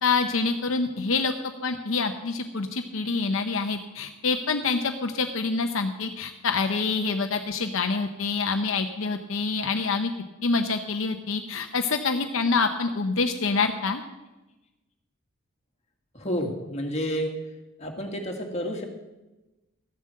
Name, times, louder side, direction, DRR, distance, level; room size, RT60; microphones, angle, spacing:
voice 1, 0.0-1.3 1.6-10.1 10.4-14.0, left 4 dB, 65° left, 6 dB, 0.8 m, -26 dB
voice 2, 16.1-17.4 17.8-18.8, equal, 30° left, 2 dB, 1.9 m, -30 dB
13.5 x 7.4 x 7.6 m, 1.1 s
head